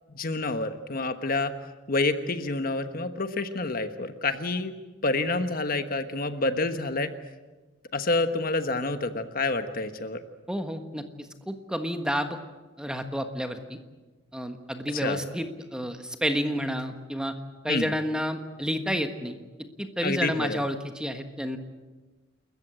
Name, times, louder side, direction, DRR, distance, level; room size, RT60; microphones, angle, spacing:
voice 1, 0.1-1.5 1.9-4.7 5.0-7.1 7.9-10.2 14.9-15.2 17.7-17.9 20.0-20.6, left 3 dB, 45° left, 9 dB, 1.3 m, -28 dB
voice 2, 10.5-12.4 12.8-13.8 14.3-17.3 17.6-19.4 19.8-21.6, equal, 5° right, 7 dB, 1.4 m, -30 dB
28.5 x 14.5 x 8.9 m, 1.2 s
head